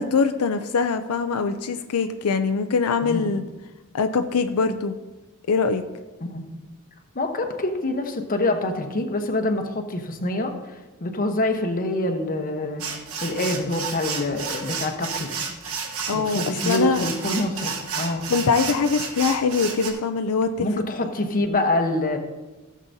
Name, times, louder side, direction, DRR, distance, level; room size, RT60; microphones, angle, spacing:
voice 1, 0.0-3.4 3.9-4.9 5.5-5.8 16.1-17.1 18.3-20.8, left 5 dB, 90° left, 8 dB, 0.5 m, -23 dB
voice 2, 7.1-10.5 11.0-12.8 13.2-15.3 16.1-18.3 20.6-22.2, left 1 dB, 40° left, 5 dB, 1.0 m, -25 dB
sound 1, 12.8-19.9, right 5 dB, 75° right, 1.2 m, -31 dB
15.5 x 7.4 x 2.7 m, 1.1 s
head